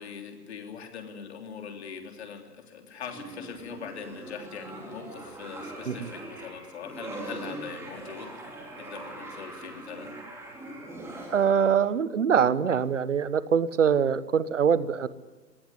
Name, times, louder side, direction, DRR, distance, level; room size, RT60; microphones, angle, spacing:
voice 1, 0.0-8.3 8.7-10.2, left 6 dB, 40° left, 5 dB, 3.4 m, -41 dB
sound 1, 3.0-11.7, right 1 dB, 5° right, 3.1 m, -41 dB
voice 2, 11.3-15.1, right 7 dB, 45° right, 17 dB, 1.2 m, -24 dB
25.0 x 19.0 x 9.8 m, 1.3 s
figure-of-eight pair, 135°, 50 cm